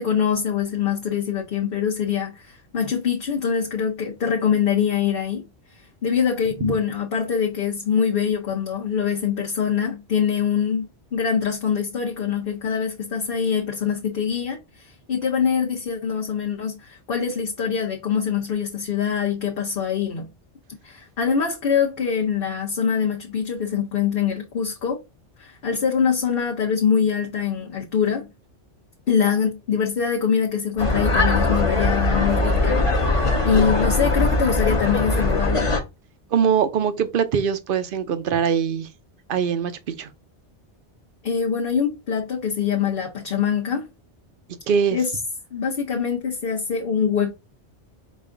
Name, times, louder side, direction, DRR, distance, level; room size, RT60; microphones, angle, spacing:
voice 1, 0.0-5.4 5.7-20.3 20.8-25.0 25.4-28.3 29.1-35.7 41.2-43.9 44.9-45.1 45.5-47.3, left 7 dB, 55° left, 1.0 m, -24 dB
sound 1, 30.8-35.8, left 2 dB, 30° left, 0.9 m, -21 dB
voice 2, 36.3-38.9 39.3-39.7 40.0-40.1 44.7-45.0, right 7 dB, 55° right, 0.8 m, -22 dB
5.3 x 2.3 x 3.7 m
omnidirectional pair, 1.2 m